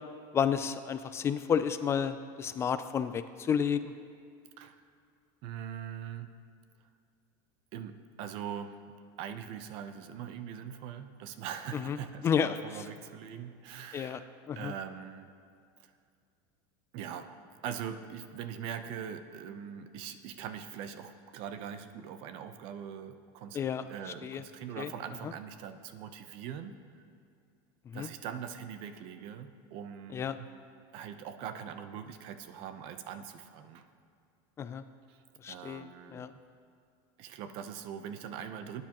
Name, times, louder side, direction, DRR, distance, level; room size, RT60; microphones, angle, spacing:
voice 1, 0.3-3.9 11.7-12.0 12.2-12.8 13.9-14.2 14.5-14.7 23.5-24.4 24.8-24.9 25.2-25.3 27.9-28.1 30.1-30.4 34.6-34.8 35.4-36.3, left 7 dB, 25° left, 11 dB, 0.3 m, -31 dB
voice 2, 5.4-6.3 7.7-8.8 9.2-14.3 14.6-15.3 15.8-15.9 16.9-17.4 17.6-23.6 23.9-26.8 27.9-30.5 30.9-33.9 35.1-35.2 35.5-36.2 37.2-38.8, right 8 dB, 55° right, 10 dB, 0.8 m, -42 dB
19.5 x 9.8 x 3.0 m, 2.3 s
supercardioid pair, 140°, 11 cm